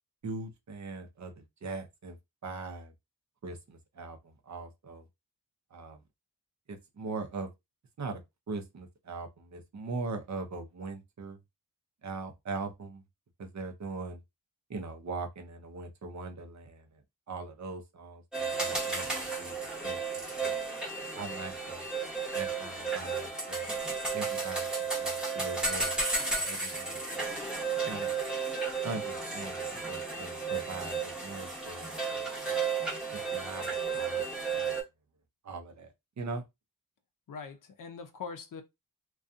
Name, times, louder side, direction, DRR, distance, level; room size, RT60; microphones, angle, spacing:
voice 1, 0.2-2.2 2.4-2.9 3.4-5.0 5.7-6.0 6.7-7.5 8.0-8.2 8.5-11.4 12.0-13.0 13.4-14.2 14.7-17.0 17.3-20.5 21.1-21.8 22.3-23.8 24.1-26.0 26.3-27.2 27.9-28.1 28.8-32.5 33.1-34.2 34.5-34.7 35.4-35.9 36.2-36.4, right 3 dB, 50° right, 0.6 m, -41 dB
sound 1, 18.3-34.8, right 4 dB, ahead, 0.8 m, -33 dB
voice 2, 37.3-38.6, left 5 dB, 60° left, 0.5 m, -42 dB
2.6 x 2.3 x 2.4 m
wide cardioid pair, 140°, 37 cm